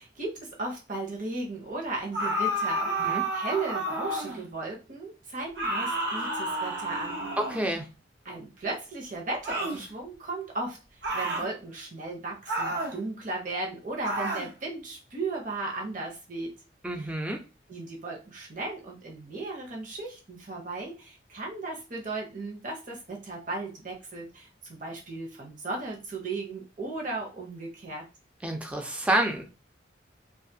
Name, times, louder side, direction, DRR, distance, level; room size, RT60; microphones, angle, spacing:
voice 1, 0.0-7.3 8.2-16.5 17.0-17.1 17.7-28.1, right 3 dB, 45° right, 0 dB, 0.8 m, -36 dB
sound 1, 2.1-4.4 5.5-7.8 9.4-9.8 11.0-11.5 12.5-13.0 14.0-14.5, right 1 dB, 75° right, 0.8 m, -30 dB
voice 2, 7.4-7.9 16.8-17.4 28.4-29.5, right 1 dB, 5° right, 3 dB, 0.5 m, -28 dB
2.5 x 2.4 x 2.7 m, 0.29 s
head